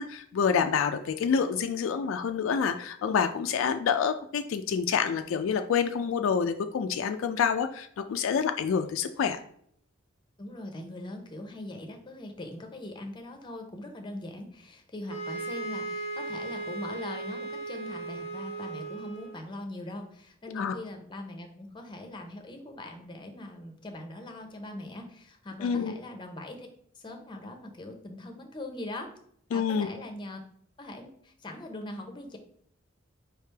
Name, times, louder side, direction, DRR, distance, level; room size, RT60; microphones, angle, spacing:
voice 1, 0.0-9.4 20.6-20.7 25.6-25.9 29.5-29.9, left 6 dB, 70° left, 8 dB, 0.3 m, -27 dB
voice 2, 10.4-26.7 26.9-29.1 29.5-30.4 30.8-32.4, left 1 dB, 20° left, 4 dB, 0.7 m, -41 dB
sound 1, 15.1-19.5, right 2 dB, 70° right, 1.5 m, -37 dB
4.8 x 3.3 x 3.3 m, 0.66 s
head